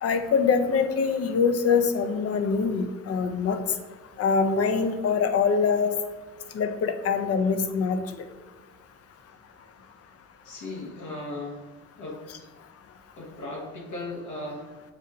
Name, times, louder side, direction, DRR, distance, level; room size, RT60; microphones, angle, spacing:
voice 1, 0.0-3.6 4.2-5.9 6.5-8.0 12.3-12.4, left 5 dB, 50° left, 8 dB, 0.5 m, -24 dB
voice 2, 10.4-11.7 12.0-12.2 13.2-14.7, left 2 dB, 75° left, -1 dB, 1.1 m, -36 dB
6.6 x 2.4 x 2.8 m, 1.3 s
cardioid pair, 90°, 30 cm